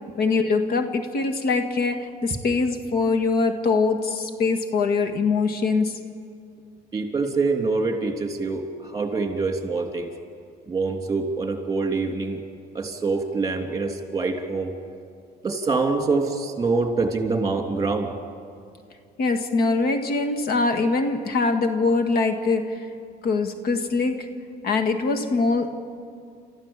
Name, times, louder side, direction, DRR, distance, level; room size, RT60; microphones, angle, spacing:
voice 1, 0.2-6.0 19.2-22.9 23.2-24.3 24.6-25.7, left 3 dB, 65° left, 7 dB, 1.7 m, -23 dB
voice 2, 6.9-10.1 10.7-12.4 12.7-14.7 15.4-18.1, right 3 dB, 20° right, 3 dB, 3.1 m, -25 dB
30.0 x 14.0 x 7.4 m, 2.3 s
cardioid pair, 110°, 17 cm